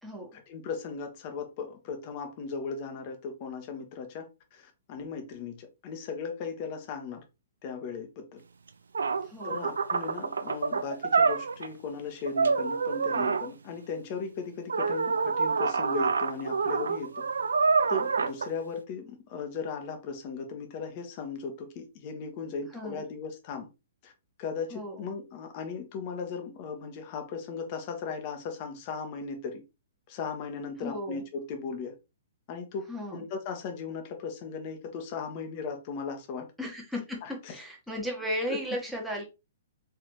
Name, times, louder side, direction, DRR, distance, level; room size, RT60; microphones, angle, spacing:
voice 1, 0.3-7.2 7.6-8.4 9.4-17.3 17.9-23.7 24.0-24.1 24.4-29.6 30.1-31.9 32.5-32.8 33.1-36.5 37.2-37.5 38.5-38.6, left 5 dB, 40° left, 1.2 m, -37 dB
sound 1, 8.7-8.8 8.9-11.7 12.3-13.5 14.7-18.5, right 4 dB, 75° right, 0.4 m, -27 dB
voice 2, 9.2-9.7 22.7-23.0 24.7-25.1 30.8-31.2 32.9-33.2 36.6-37.2 37.5-39.2, equal, ahead, 1.3 m, -35 dB
4.7 x 3.2 x 3.0 m
figure-of-eight pair, 120°, 0 cm